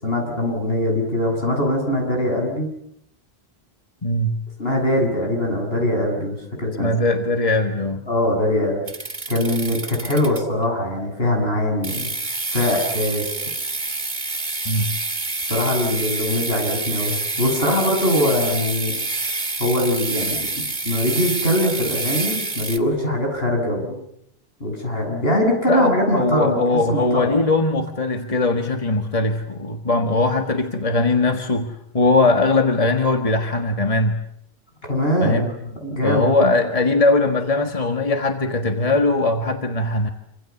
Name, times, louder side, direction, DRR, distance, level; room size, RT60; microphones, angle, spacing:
voice 1, 0.0-2.7 4.6-6.9 8.1-8.8 9.3-12.1 12.5-13.3 15.5-19.0 19.6-24.0 24.6-26.6 26.9-27.4 34.9-36.4, left 1 dB, 70° left, 1 dB, 8.1 m, -22 dB
voice 2, 4.0-4.4 6.8-8.0 14.7-15.0 25.7-34.2 35.2-35.5 36.0-40.1, left 2 dB, 35° left, 5 dB, 1.8 m, -20 dB
sound 1, 8.9-10.6 11.8-22.8, right 3 dB, 45° right, 2.5 m, -27 dB
27.0 x 26.5 x 7.3 m, 0.75 s
omnidirectional pair, 1.0 m